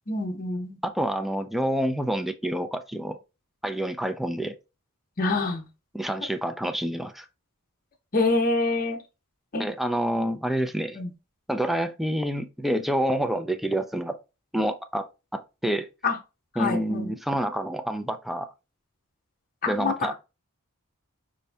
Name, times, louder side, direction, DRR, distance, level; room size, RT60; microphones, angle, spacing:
voice 1, 0.1-0.8 5.2-5.6 8.1-9.0 9.5-9.6 10.9-11.1 16.0-16.2 16.5-17.1 19.6-20.1, left 3 dB, 40° left, 0.8 m, -26 dB
voice 2, 0.8-3.2 3.6-4.6 5.9-7.3 9.6-11.0 11.5-14.2 14.5-15.1 15.3-15.9 16.6-18.5 19.7-20.1, equal, ahead, 0.3 m, -27 dB
5.3 x 2.6 x 3.3 m
head